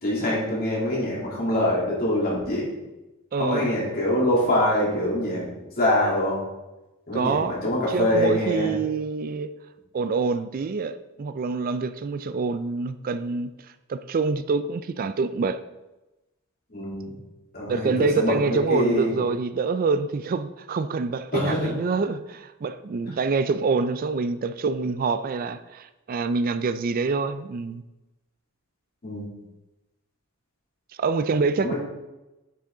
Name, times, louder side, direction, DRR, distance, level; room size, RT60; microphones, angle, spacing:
voice 1, 0.0-2.7 3.4-5.5 5.8-6.4 7.1-8.7 16.7-17.1 17.5-19.1 21.3-21.7 29.0-29.2 31.6-31.7, left 1 dB, 50° left, -5 dB, 3.2 m, -24 dB
voice 2, 3.3-3.7 7.1-7.6 7.9-9.5 9.9-15.6 17.7-27.8 31.0-31.7, right 4 dB, 45° right, 12 dB, 0.4 m, -26 dB
9.9 x 6.0 x 3.8 m, 1.0 s
head